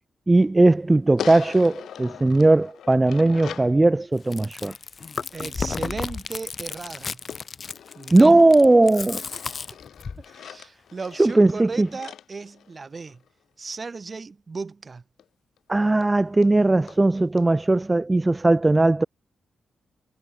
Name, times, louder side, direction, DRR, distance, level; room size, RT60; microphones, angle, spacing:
voice 1, 0.3-4.7 8.1-9.2 11.2-11.9 15.7-19.0, right 2 dB, 25° right, 0.5 m, -18 dB
sound 1, 1.2-3.8 7.3-8.7 9.2-13.3 15.2-15.3 15.6-15.7 16.0-16.1 16.4-16.5 16.9-17.0 17.4-17.5, left 9 dB, 75° left, 2.2 m, -41 dB
Chewing mastication, 4.2-10.3, left 5 dB, 50° left, 2.2 m, -33 dB
voice 2, 5.3-7.2 8.0-8.4 10.2-13.2 13.6-15.0, right 4 dB, 45° right, 3.4 m, -35 dB
hypercardioid pair, 40°, 0 cm